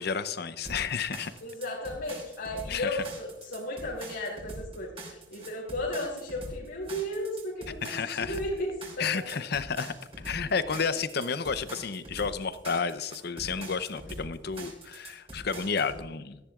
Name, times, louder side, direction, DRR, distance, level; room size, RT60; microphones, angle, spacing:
voice 1, 0.0-1.3 2.7-3.0 7.8-8.4 9.0-9.9 10.2-16.4, left 5 dB, 55° left, 13 dB, 0.7 m, -31 dB
sound 1, 0.6-16.0, right 1 dB, 30° right, 3.4 m, -44 dB
voice 2, 1.4-9.1, left 1 dB, 85° left, -5 dB, 2.9 m, -34 dB
17.0 x 13.5 x 2.4 m, 0.99 s
head